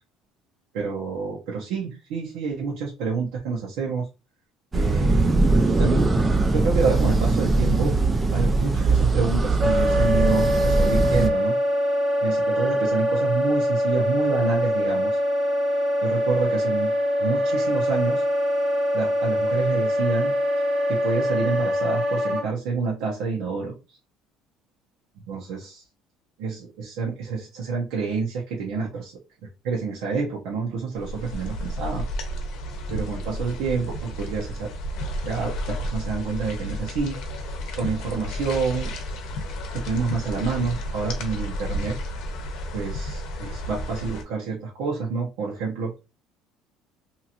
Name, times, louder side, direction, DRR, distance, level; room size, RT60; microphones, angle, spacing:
voice 1, 0.7-4.0 4.7-6.1 6.5-8.0 8.3-11.6 12.2-15.2 16.0-16.9 17.2-18.2 18.9-20.3 20.9-23.7 25.3-25.8 26.4-29.1 29.6-32.1 32.9-34.7 35.3-37.2 37.8-38.9 39.7-41.9 42.7-46.0, right 4 dB, 80° right, -3 dB, 0.8 m, -28 dB
sound 1, 4.7-11.3, right 3 dB, 15° right, 0.3 m, -21 dB
Wind instrument woodwind instrument, 9.6-22.4, equal, 45° right, 1.0 m, -23 dB
sound 2, 31.0-44.2, equal, 65° left, 0.7 m, -32 dB
2.8 x 2.5 x 2.8 m, 0.29 s
cardioid pair, 150°, 0 cm